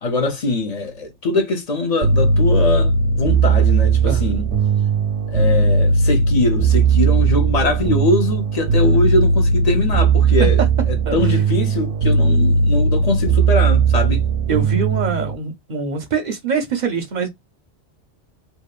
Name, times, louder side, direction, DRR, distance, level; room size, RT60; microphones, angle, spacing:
voice 1, 0.0-4.4 5.3-10.6 10.9-14.2, left 2 dB, 45° left, 0.6 m, -22 dB
sound 1, 2.0-15.3, right 4 dB, 85° right, 0.9 m, -17 dB
voice 2, 11.1-11.4 14.5-17.3, right 5 dB, 50° right, 0.6 m, -24 dB
2.8 x 2.1 x 2.3 m
omnidirectional pair, 1.2 m